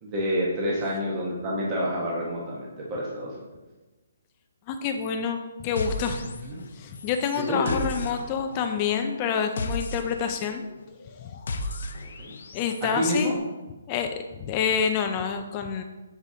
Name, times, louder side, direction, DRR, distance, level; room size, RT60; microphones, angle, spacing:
voice 1, 0.0-3.4 6.4-6.6 7.5-7.9 12.2-12.3 12.8-13.4, equal, 20° right, -4 dB, 1.2 m, -28 dB
voice 2, 4.7-6.2 6.8-10.6 12.5-13.4 13.9-14.1 14.4-15.8, left 7 dB, 25° left, 6 dB, 0.5 m, -27 dB
sound 1, 5.8-6.7 6.9-12.9, left 2 dB, 65° left, 0.8 m, -35 dB
12.0 x 4.8 x 2.8 m, 1.2 s
hypercardioid pair, 165°, 0 cm